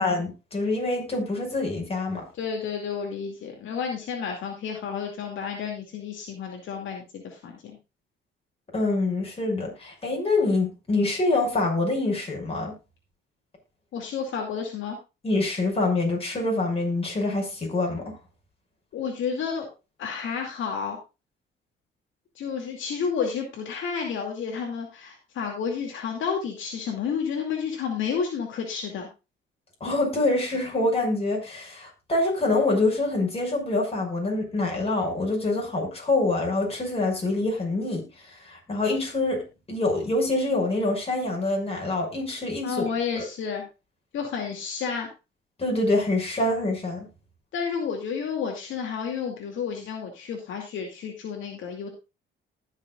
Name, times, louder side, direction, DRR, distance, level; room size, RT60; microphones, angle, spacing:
voice 1, 0.0-2.2 8.7-12.7 15.2-18.2 29.8-42.8 43.2-43.3 45.6-47.1, left 2 dB, 30° left, 0 dB, 6.0 m, -25 dB
voice 2, 2.4-7.6 13.9-15.0 18.9-19.7 20.0-21.0 22.4-29.1 42.6-43.6 44.1-45.1 47.5-51.9, left 6 dB, 75° left, 2 dB, 2.4 m, -31 dB
19.5 x 6.7 x 2.4 m, 0.28 s
cardioid pair, 90°, 20 cm